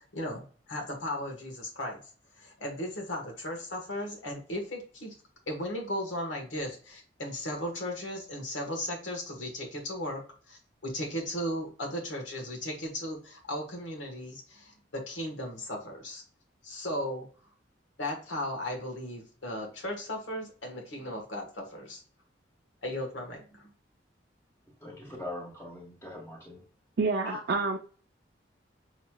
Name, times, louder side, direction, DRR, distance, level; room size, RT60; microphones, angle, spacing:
voice 1, 0.0-2.0 2.4-5.1 5.5-16.2 16.6-17.3 18.0-22.0 22.8-23.7, left 1 dB, 85° left, 1.4 m, -36 dB
voice 2, 24.8-26.6 27.2-27.4, left 2 dB, 15° left, 1.3 m, -41 dB
voice 3, 27.0-27.8, right 4 dB, 55° right, 0.4 m, -28 dB
6.4 x 3.0 x 2.3 m
head